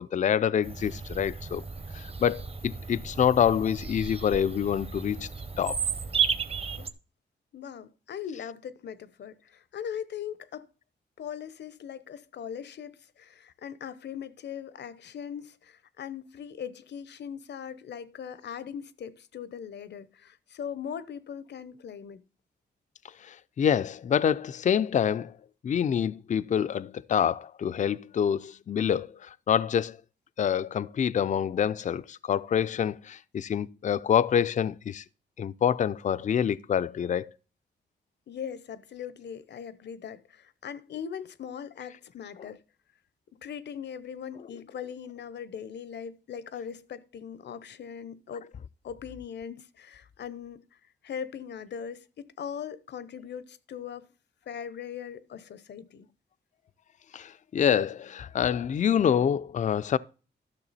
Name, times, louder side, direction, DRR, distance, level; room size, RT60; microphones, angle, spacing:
voice 1, 0.0-1.6 1.9-5.3 5.6-5.8 23.2-25.4 25.6-30.0 30.4-35.0 35.4-37.3 42.4-42.5 57.1-60.0, left 8 dB, 45° left, 0.4 m, -26 dB
Bird vocalization bird call bird song, 0.6-6.9, right 6 dB, 35° right, 0.8 m, -33 dB
voice 2, 7.5-10.7 11.2-22.2 38.3-42.6 43.4-48.5 48.8-50.6 51.0-54.1 54.5-56.1, left 8 dB, 75° left, 0.8 m, -40 dB
12.5 x 6.5 x 4.1 m
cardioid pair, 105°, 18 cm